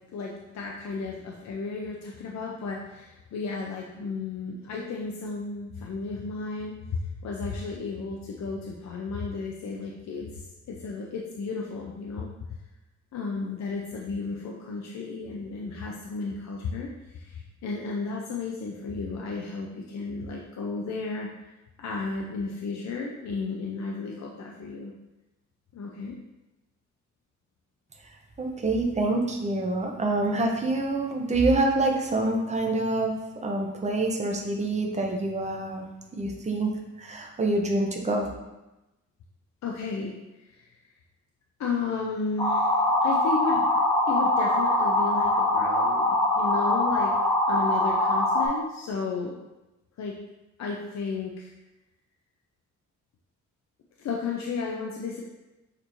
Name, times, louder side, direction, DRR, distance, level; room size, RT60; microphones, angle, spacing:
voice 1, 0.1-12.3 13.1-21.3 21.8-24.9 25.7-26.2 39.6-40.2 40.5-40.7 41.6-43.7 44.1-47.1 47.5-49.4 50.0-50.2 50.6-51.5 54.0-55.2, left 4 dB, 65° left, -1 dB, 0.5 m, -33 dB
voice 2, 28.4-33.1 33.4-35.9 36.1-38.3, right 2 dB, 25° right, 1 dB, 0.6 m, -26 dB
sound 1, 42.4-48.5, left 1 dB, 15° left, 0.6 m, -23 dB
6.6 x 2.6 x 3.0 m, 1.0 s
wide cardioid pair, 155°, 30 cm